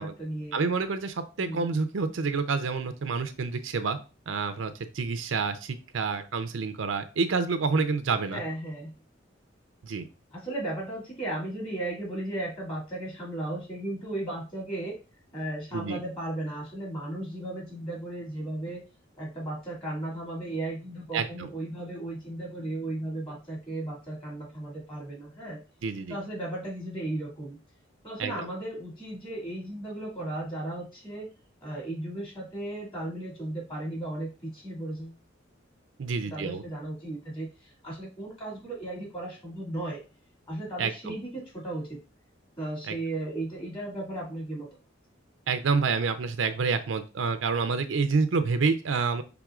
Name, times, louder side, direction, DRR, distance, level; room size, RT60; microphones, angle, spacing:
voice 1, 0.0-0.6 1.4-1.7 8.3-8.9 10.3-14.9 15.3-18.8 19.2-25.6 26.1-27.6 28.0-31.3 31.6-35.2 36.3-40.0 40.5-42.0 42.6-44.7, right 1 dB, 25° left, -4 dB, 2.1 m, -35 dB
voice 2, 0.5-4.0 4.3-8.4 9.8-10.1 15.7-16.0 21.1-21.5 25.8-26.2 28.2-28.5 36.0-36.6 40.8-41.1 42.9-43.0 45.5-49.2, right 4 dB, 85° right, 9 dB, 0.5 m, -28 dB
6.1 x 3.5 x 2.4 m, 0.32 s
head